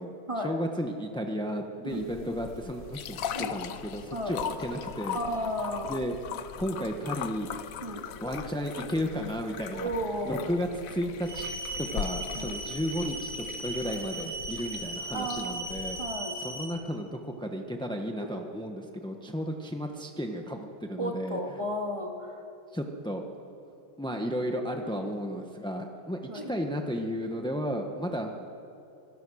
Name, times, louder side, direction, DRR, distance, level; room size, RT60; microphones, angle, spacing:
voice 1, 0.0-5.2 5.9-6.1 6.6-7.8 8.2-9.9 10.2-11.4 11.8-16.0 16.4-21.4 22.7-23.2 24.0-28.4, equal, 5° left, 3 dB, 0.5 m, -33 dB
sound 1, 1.9-16.1, left 9 dB, 70° left, 0.8 m, -40 dB
voice 2, 5.1-5.9 7.8-8.1 9.7-10.5 12.3-12.5 15.1-15.5 16.0-16.4 18.2-18.3 21.0-22.4 24.9-25.1 26.3-26.5, equal, 15° right, 1 dB, 1.9 m, -33 dB
sound 2, 11.2-16.6, right 1 dB, 50° right, 5.2 m, -37 dB
25.5 x 17.0 x 6.4 m, 2.7 s
omnidirectional pair, 2.3 m